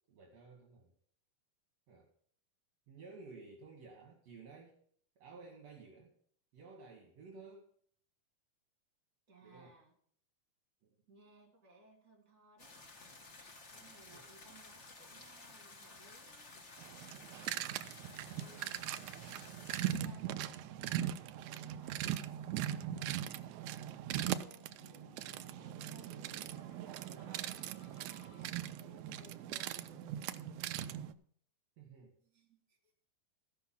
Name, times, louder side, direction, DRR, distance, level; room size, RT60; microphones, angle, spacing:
voice 1, 0.1-0.9 1.9-2.1 2.9-4.8 5.2-6.1 6.5-7.7 9.4-9.8 10.8-11.0 14.1-14.3 18.1-18.4 31.8-32.2, right 4 dB, 60° right, 1 dB, 2.4 m, -54 dB
voice 2, 9.3-9.9 11.1-12.8 13.7-16.7 18.3-19.3 19.8-23.2 24.1-26.2 26.8-30.7 32.2-33.0, right 3 dB, 30° right, 0 dB, 3.4 m, -62 dB
sound 1, 12.6-20.0, left 3 dB, 85° left, 0.6 m, -54 dB
sound 2, 16.8-31.1, right 11 dB, 80° right, 1.6 m, -40 dB
sound 3, 24.1-29.0, left 6 dB, 65° left, 2.2 m, -63 dB
15.5 x 5.8 x 5.7 m, 0.62 s
omnidirectional pair, 3.8 m